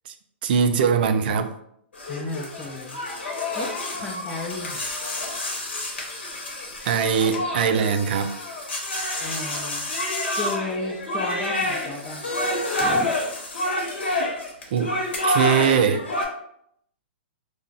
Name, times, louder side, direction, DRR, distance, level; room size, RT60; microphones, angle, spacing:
voice 1, 0.4-1.5 6.8-8.3 14.2-14.3 14.7-15.0 15.2-16.0, right 7 dB, 60° right, 8 dB, 0.4 m, -21 dB
sound 1, 1.9-16.2, left 1 dB, 85° left, 0.9 m, -28 dB
voice 2, 2.1-3.0 3.5-4.8 9.2-9.9 10.4-12.3 12.8-13.1, left 2 dB, 20° left, -4 dB, 0.4 m, -33 dB
2.4 x 2.0 x 3.8 m, 0.72 s
hypercardioid pair, 140°, 6 cm